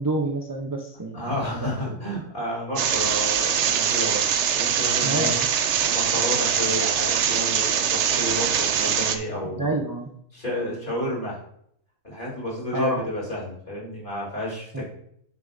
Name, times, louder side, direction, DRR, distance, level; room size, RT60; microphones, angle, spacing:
voice 1, 0.0-2.0 5.0-5.5 9.5-10.1 12.7-13.0 14.7-14.8, right 2 dB, 30° right, 1 dB, 0.4 m, -28 dB
voice 2, 1.1-5.3 5.7-9.7 10.3-11.4 12.0-14.8, left 1 dB, 40° left, -6 dB, 3.3 m, -31 dB
sound 1, 2.8-9.2, right 8 dB, 65° right, 0.9 m, -23 dB
9.8 x 6.6 x 2.6 m, 0.68 s
omnidirectional pair, 1.4 m